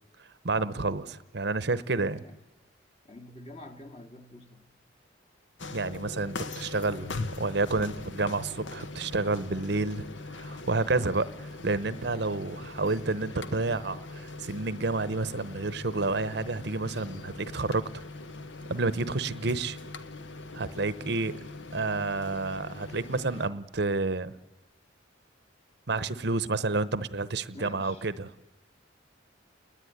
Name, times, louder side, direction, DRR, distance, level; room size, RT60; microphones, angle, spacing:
voice 1, 0.4-2.2 5.7-10.0 10.3-18.0 18.7-19.8 20.5-21.3 21.7-24.3 25.9-28.5, right 3 dB, 60° right, 0.9 m, -30 dB
voice 2, 3.0-4.6 27.5-28.1, left 1 dB, 30° left, 2.0 m, -46 dB
sound 1, 5.6-23.5, left 2 dB, 70° left, 1.4 m, -41 dB
29.0 x 20.5 x 9.5 m
head